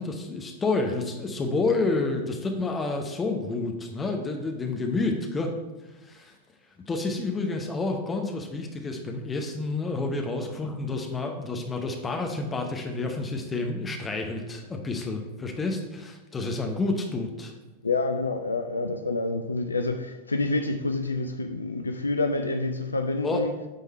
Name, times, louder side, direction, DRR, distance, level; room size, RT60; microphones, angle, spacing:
voice 1, 0.0-5.5 6.0-6.3 6.9-17.5 23.2-23.4, left 3 dB, 15° left, 0.8 m, -29 dB
voice 2, 17.8-23.7, left 3 dB, 80° left, 0.4 m, -28 dB
9.0 x 3.7 x 4.3 m
figure-of-eight pair, 90°, 0 cm